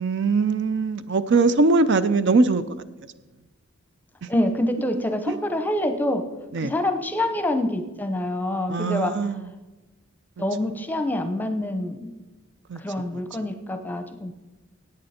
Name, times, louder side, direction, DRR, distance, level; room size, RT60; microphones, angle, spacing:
voice 1, 0.0-2.6 5.3-5.4 6.5-6.7 8.7-9.5 12.7-12.8, right 3 dB, 55° right, 13 dB, 0.5 m, -21 dB
voice 2, 4.3-6.2 6.6-9.1 10.4-12.1 12.8-14.3, left 1 dB, 10° left, 7 dB, 0.8 m, -26 dB
16.5 x 8.8 x 4.3 m, 1.1 s
head